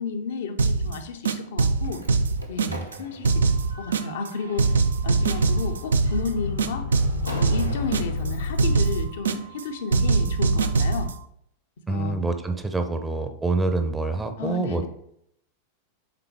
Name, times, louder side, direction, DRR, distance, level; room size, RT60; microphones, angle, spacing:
voice 1, 0.0-2.0 2.5-4.7 5.0-6.9 7.3-11.1 11.9-12.2 14.4-14.9, left 4 dB, 60° left, 6 dB, 0.6 m, -32 dB
sound 1, 0.6-0.9 1.2-3.0 3.2-4.3 4.6-6.3 6.6-8.3 8.6-9.6 9.9-11.1, right 4 dB, 70° right, 0.4 m, -22 dB
Slam, 1.7-9.1, equal, 85° right, 0.8 m, -42 dB
sound 2, 5.7-9.5, left 4 dB, 80° left, 1.4 m, -32 dB
voice 2, 11.9-14.9, right 3 dB, 15° right, 7 dB, 0.6 m, -26 dB
9.0 x 3.7 x 3.0 m, 0.72 s
figure-of-eight pair, 90°, 0 cm